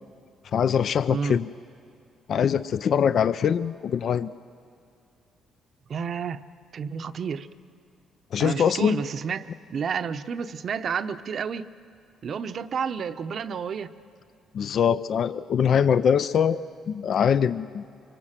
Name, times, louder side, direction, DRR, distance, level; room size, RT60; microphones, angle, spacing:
voice 1, 0.5-1.5 2.3-4.3 8.3-9.0 14.5-17.8, left 7 dB, 55° left, 13 dB, 0.5 m, -23 dB
voice 2, 1.1-1.4 5.9-6.4 6.7-7.5 8.4-11.7 12.2-13.9, right 6 dB, 50° right, 11 dB, 0.8 m, -30 dB
25.0 x 23.5 x 7.5 m, 2.5 s
cardioid pair, 115°, 0 cm